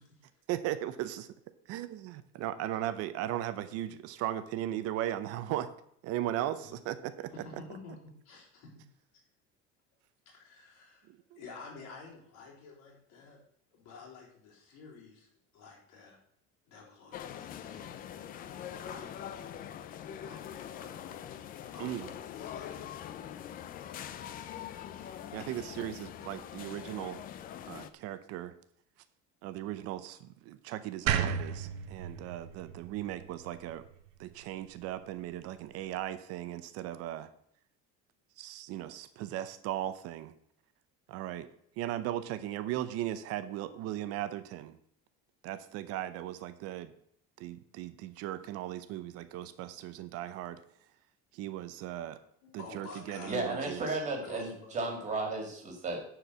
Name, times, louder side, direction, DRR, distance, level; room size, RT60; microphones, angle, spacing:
voice 1, 0.5-1.3 1.7-5.7 6.0-7.3 11.1-11.4 21.8-22.1 25.3-27.2 27.7-28.5 29.4-33.8 34.2-37.3 38.4-40.3 41.1-41.5 41.8-44.8 45.4-46.9 47.4-50.6 51.3-52.2 52.5-53.9, right 13 dB, 50° right, 13 dB, 0.7 m, -37 dB
voice 2, 7.3-8.0 8.2-8.7 10.3-11.1 11.4-13.4 13.7-16.2 16.7-19.5 20.2-21.2 21.7-23.0 52.4-53.5 53.9-54.9, left 4 dB, 60° left, -2 dB, 3.9 m, -50 dB
sound 1, 17.1-27.9, left 10 dB, 30° left, 0.4 m, -43 dB
sound 2, 31.1-34.2, right 8 dB, 80° right, 1.0 m, -34 dB
voice 3, 53.3-56.0, right 3 dB, 25° right, 3 dB, 2.1 m, -34 dB
10.0 x 4.7 x 6.8 m, 0.70 s
cardioid pair, 175°, 30 cm